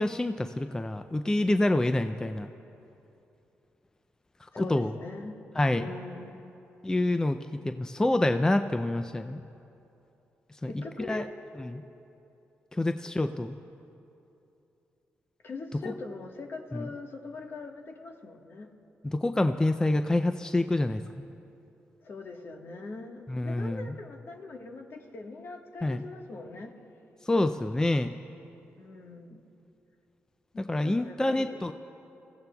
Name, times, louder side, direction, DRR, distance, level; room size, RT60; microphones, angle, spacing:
voice 1, 0.0-2.5 4.7-4.9 5.6-5.9 6.8-9.4 10.6-10.7 11.1-11.2 11.6-11.8 12.8-13.6 16.7-16.9 19.0-21.2 23.3-23.9 25.8-26.0 27.3-28.1 30.7-31.7, left 1 dB, 15° left, 9 dB, 0.4 m, -27 dB
voice 2, 4.5-5.3 5.8-6.5 10.6-11.3 13.2-13.3 15.4-18.7 22.0-26.7 28.7-29.4 30.5-31.7, left 3 dB, 55° left, 3 dB, 1.4 m, -42 dB
29.5 x 15.5 x 2.3 m, 2.8 s
cardioid pair, 70°, 5 cm